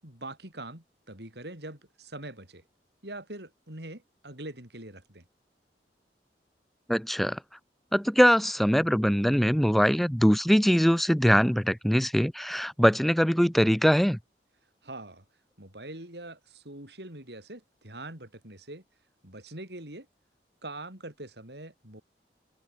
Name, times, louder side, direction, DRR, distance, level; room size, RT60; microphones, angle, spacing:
voice 1, 0.0-2.6 3.0-5.2 14.8-15.2 15.6-18.8 19.2-20.1 20.6-22.0, right 2 dB, 70° right, 6.2 m, -43 dB
voice 2, 6.9-7.4 7.9-14.2, equal, ahead, 0.4 m, -22 dB
head